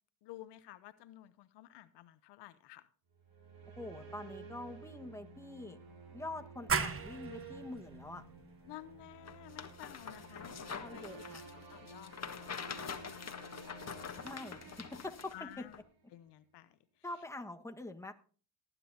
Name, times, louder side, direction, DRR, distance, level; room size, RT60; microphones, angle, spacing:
voice 1, 0.2-2.9 8.6-11.0 11.7-12.6 15.3-15.8 16.1-16.8, left 14 dB, 80° left, 14 dB, 0.8 m, -52 dB
sound 1, 3.1-16.0, right 3 dB, 90° right, 3.9 m, -52 dB
voice 2, 3.8-5.8 6.1-8.2 10.8-11.4 14.2-15.6 17.0-18.1, left 2 dB, 5° left, 5 dB, 1.5 m, -45 dB
sound 2, 6.7-12.1, right 6 dB, 35° right, 1.2 m, -40 dB
sound 3, 9.3-15.4 15.7-15.8, left 6 dB, 40° left, 1.5 m, -45 dB
18.5 x 9.9 x 2.8 m, 0.41 s
supercardioid pair, 70°, 41 cm